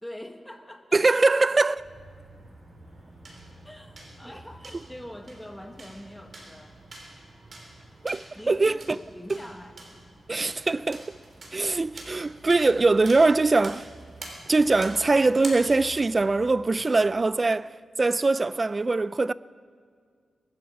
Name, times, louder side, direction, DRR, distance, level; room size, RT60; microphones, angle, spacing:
voice 1, 0.0-1.0 3.6-6.8 8.3-9.7, left 1 dB, 5° left, 1.5 m, -43 dB
voice 2, 0.9-1.8 8.0-8.8 10.3-11.2 11.5-13.9 14.5-17.7 18.0-19.3, right 3 dB, 35° right, 0.3 m, -22 dB
sound 1, 1.8-16.5, right 2 dB, 55° right, 3.4 m, -46 dB
20.5 x 12.5 x 4.8 m
cardioid pair, 75°, 0 cm